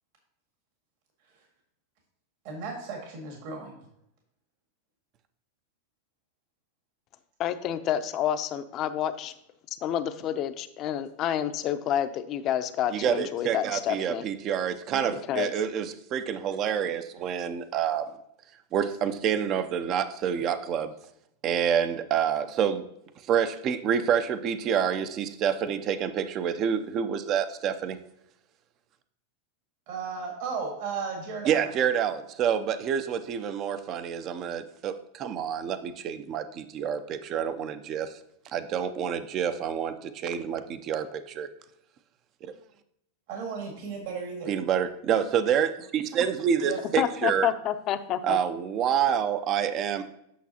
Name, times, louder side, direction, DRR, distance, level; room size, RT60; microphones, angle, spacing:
voice 1, 2.4-3.7 14.9-15.2 29.9-31.7 43.3-44.5 46.6-46.8, right 5 dB, 60° right, 1 dB, 1.9 m, -35 dB
voice 2, 7.4-9.3 9.8-14.2 15.3-15.5 47.0-48.4, left 10 dB, 40° left, 10 dB, 0.6 m, -29 dB
voice 3, 12.9-18.1 18.7-20.9 21.4-22.9 23.3-28.0 31.5-38.1 38.5-41.5 42.4-42.5 44.5-47.5 48.2-50.0, right 8 dB, 35° right, 11 dB, 0.5 m, -28 dB
8.4 x 6.0 x 2.8 m, 0.76 s
supercardioid pair, 135°, 0 cm